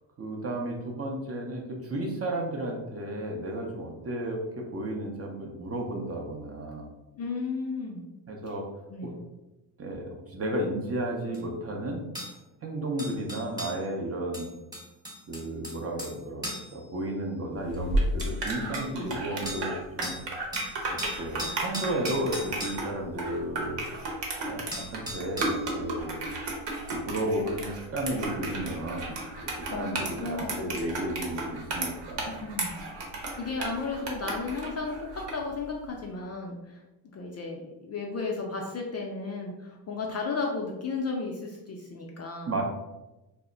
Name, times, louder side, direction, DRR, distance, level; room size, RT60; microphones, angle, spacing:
voice 1, 0.2-6.9 8.3-8.7 9.0-9.1 9.8-12.0 12.6-14.5 15.3-20.2 20.9-23.9 24.5-26.2 26.9-29.2 29.6-32.4 42.5-42.6, right 1 dB, 30° right, 1 dB, 0.6 m, -33 dB
voice 2, 7.2-8.0 8.9-9.2 18.6-19.1 29.7-31.1 32.4-32.8 33.1-36.8 37.1-42.5, left 4 dB, 35° left, 0 dB, 0.4 m, -34 dB
sound 1, 11.3-11.4 12.1-12.3 13.0-13.8 14.3-16.2 16.4-16.7 17.7-17.8 18.2-18.9 19.5-19.7 20.0-20.2 20.5-22.8 24.3-24.4 24.7-25.6 26.9-27.0, equal, 10° right, 1.0 m, -38 dB
sound 2, 17.7-35.4, right 2 dB, 60° right, 0.9 m, -33 dB
2.1 x 2.0 x 3.7 m, 1.0 s
cardioid pair, 85°, 49 cm